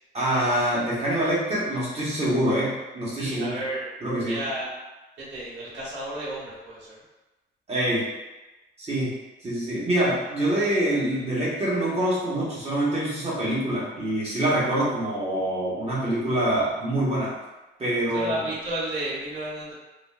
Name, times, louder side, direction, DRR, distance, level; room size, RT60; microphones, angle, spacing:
voice 1, 0.1-3.5 4.0-4.4 7.7-8.1 8.8-9.1 9.4-17.3 17.8-18.3, right 1 dB, 30° right, -7 dB, 1.3 m, -25 dB
voice 2, 3.2-3.9 4.2-4.7 5.2-7.0 18.1-19.7, right 1 dB, 65° right, -9 dB, 1.5 m, -32 dB
3.8 x 2.3 x 2.4 m, 1.1 s
cardioid pair, 90°, 20 cm